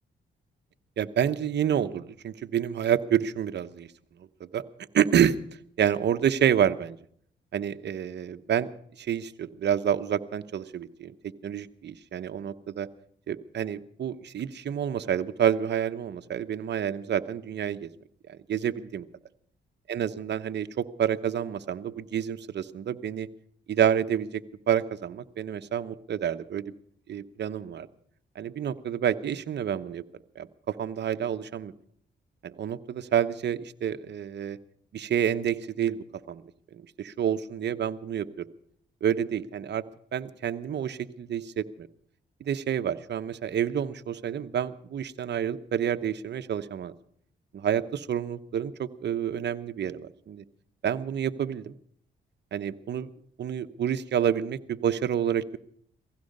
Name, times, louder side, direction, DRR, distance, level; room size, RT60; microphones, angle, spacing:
voice 1, 1.0-3.9 4.4-4.6 4.9-5.4 5.8-7.0 7.5-8.7 9.0-12.9 13.3-17.9 18.3-19.1 19.9-23.3 23.7-24.4 24.7-26.7 27.1-27.9 28.4-30.0 30.4-31.7 32.4-34.6 34.9-36.4 36.7-38.5 39.0-39.8 40.1-41.9 42.4-46.9 47.5-50.4 50.8-51.7 52.5-53.1 53.4-55.6, right 9 dB, 65° right, 11 dB, 1.0 m, -28 dB
17.0 x 15.5 x 5.4 m, 0.63 s
cardioid pair, 70°, 19 cm